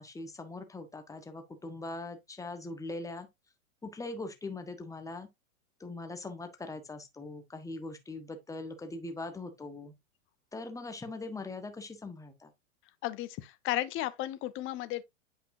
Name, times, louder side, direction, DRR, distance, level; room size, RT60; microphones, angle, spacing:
voice 1, 0.0-3.3 3.8-5.3 5.8-9.9 10.5-12.5, left 2 dB, 10° left, 1.4 m, -41 dB
voice 2, 13.0-15.0, left 15 dB, 30° left, 0.8 m, -34 dB
8.4 x 5.1 x 2.7 m
hypercardioid pair, 110°, 40 cm